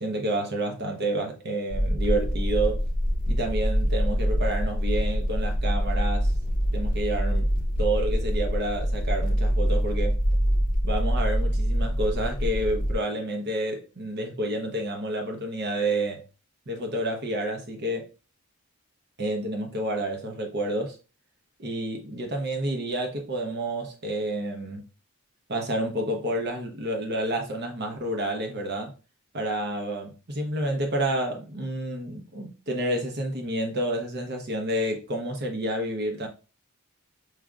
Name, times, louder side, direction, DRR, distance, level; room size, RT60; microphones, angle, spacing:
voice 1, 0.0-2.8 3.3-6.3 6.7-7.5 7.8-10.2 10.8-16.2 16.7-18.1 19.2-21.0 21.6-24.8 25.5-28.9 29.3-36.3, right 1 dB, 50° right, 0.9 m, -29 dB
sound 1, 1.7-12.9, equal, 40° left, 0.6 m, -25 dB
4.8 x 2.8 x 2.4 m
head